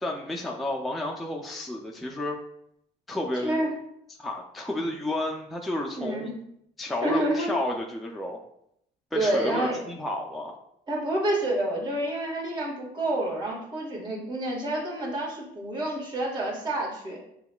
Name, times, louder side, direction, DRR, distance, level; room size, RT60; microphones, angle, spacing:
voice 1, 0.0-2.4 3.1-3.6 4.2-6.3 6.8-8.4 9.1-10.6, left 1 dB, ahead, 0 dB, 0.4 m, -31 dB
voice 2, 6.0-6.3 7.0-7.5 9.1-9.8 10.9-17.2, right 1 dB, 25° right, -4 dB, 1.4 m, -28 dB
6.6 x 2.3 x 2.2 m, 0.74 s
cardioid pair, 110°, 17 cm